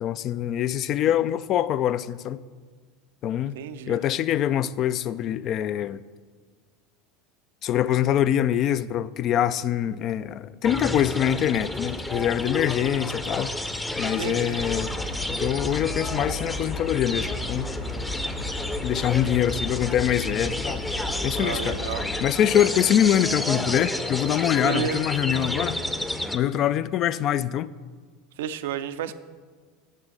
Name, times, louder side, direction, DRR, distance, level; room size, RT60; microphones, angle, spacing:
voice 1, 0.0-2.4 3.2-3.5 3.9-6.0 7.6-13.5 14.0-14.9 15.3-17.7 18.8-20.9 21.2-21.8 22.2-25.8 26.3-27.7, left 10 dB, 45° left, 0.3 m, -24 dB
voice 2, 3.5-4.0 14.2-14.7 21.3-22.1 24.6-25.1 28.4-29.1, right 9 dB, 70° right, 0.4 m, -31 dB
sound 1, 10.6-26.4, left 1 dB, 10° left, 0.6 m, -31 dB
sound 2, 14.5-22.2, left 1 dB, 85° left, 2.0 m, -34 dB
7.5 x 6.2 x 6.3 m
hypercardioid pair, 80°, 0 cm